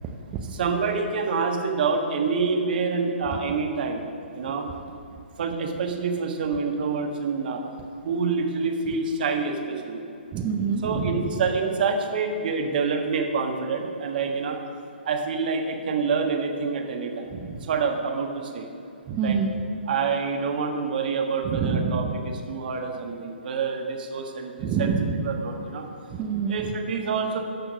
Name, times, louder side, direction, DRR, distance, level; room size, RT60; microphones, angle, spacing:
voice 1, 0.0-0.4 10.3-11.4 17.3-17.6 19.1-19.7 21.4-22.3 24.6-25.2 26.1-26.7, right 5 dB, 25° right, 1 dB, 0.7 m, -27 dB
voice 2, 0.5-4.0 4.3-4.7 5.4-7.6 8.0-10.0 10.8-14.6 15.0-17.3 17.7-18.7 19.2-19.4 19.9-24.9 25.2-25.8 26.5-27.4, right 5 dB, 55° right, 3 dB, 1.4 m, -27 dB
12.0 x 4.5 x 6.5 m, 2.6 s
hypercardioid pair, 135°, 6 cm